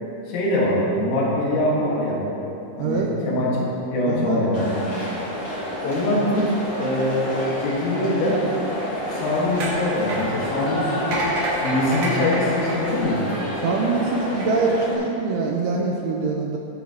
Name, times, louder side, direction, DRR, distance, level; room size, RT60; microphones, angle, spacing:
voice 1, 0.3-2.2 2.8-3.5 3.9-4.7 5.8-6.5 6.8-8.4 9.1-11.2 11.6-13.2, left 1 dB, 85° left, -5 dB, 4.3 m, -23 dB
voice 2, 2.8-3.1 4.1-4.4 13.6-16.6, right 4 dB, 85° right, 0 dB, 2.9 m, -24 dB
sound 1, 4.5-15.0, left 1 dB, 60° left, 1.1 m, -29 dB
sound 2, 8.8-13.7 14.2-14.5, right 1 dB, 65° right, 1.9 m, -29 dB
17.0 x 6.1 x 2.9 m, 2.9 s
omnidirectional pair, 5.9 m